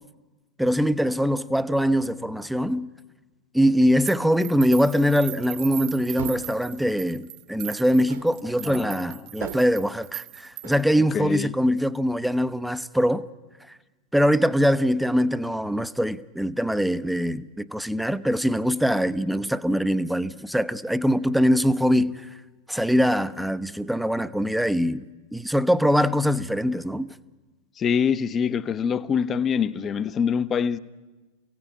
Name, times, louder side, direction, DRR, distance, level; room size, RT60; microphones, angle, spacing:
voice 1, 0.6-2.9 3.5-13.2 14.1-22.3 22.7-27.1, equal, ahead, 0.8 m, -23 dB
sound 1, 4.1-10.9, right 17 dB, 40° right, 0.7 m, -39 dB
sound 2, 4.8-5.3 6.2-6.6 8.1-8.4 9.4-9.9 10.6-10.9, right 8 dB, 60° right, 1.9 m, -39 dB
voice 2, 8.6-9.2 11.1-11.5 27.8-30.8, left 7 dB, 25° left, 0.9 m, -25 dB
30.0 x 17.0 x 8.7 m
figure-of-eight pair, 90°, 0 cm